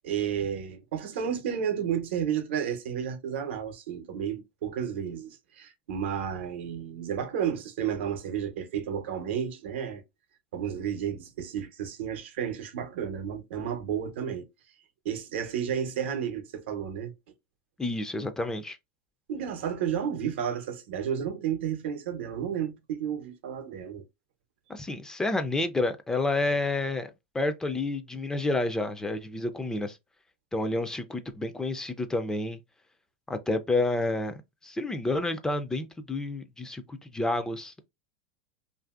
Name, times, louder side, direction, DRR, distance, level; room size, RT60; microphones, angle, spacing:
voice 1, 0.0-10.0 10.5-14.5 15.0-17.1 19.3-24.0, right 8 dB, 80° right, 0.7 m, -32 dB
voice 2, 17.8-18.8 24.7-30.0 30.5-32.6 33.3-34.4 34.6-37.9, left 2 dB, 10° left, 0.3 m, -29 dB
2.8 x 2.5 x 2.3 m
supercardioid pair, 125°, 6 cm